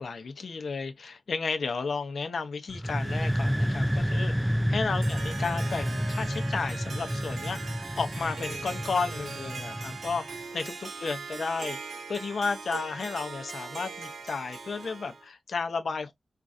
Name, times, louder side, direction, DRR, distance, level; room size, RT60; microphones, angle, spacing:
voice 1, 0.0-11.8 12.1-16.1, left 4 dB, 75° left, 0.7 m, -33 dB
sound 1, 2.7-10.3, equal, 5° right, 0.3 m, -30 dB
Harp, 4.7-15.3, right 4 dB, 70° right, 0.5 m, -40 dB
4.5 x 2.5 x 2.6 m
wide cardioid pair, 120°, 0 cm